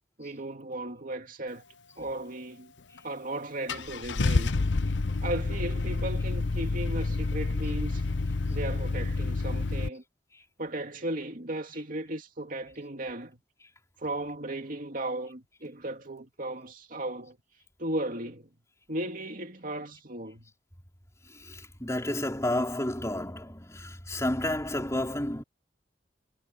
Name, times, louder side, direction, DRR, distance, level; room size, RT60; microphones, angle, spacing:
voice 1, 0.2-1.6 2.0-2.7 3.0-4.6 5.2-8.0 8.5-10.0 10.6-13.4 14.0-17.4 17.8-18.5 18.9-20.5, right 1 dB, 50° right, 2.6 m, -36 dB
Car / Engine starting, 3.0-3.1 3.7-9.9, left 3 dB, 90° left, 0.8 m, -28 dB
voice 2, 21.3-25.4, left 1 dB, 15° left, 5.1 m, -31 dB
head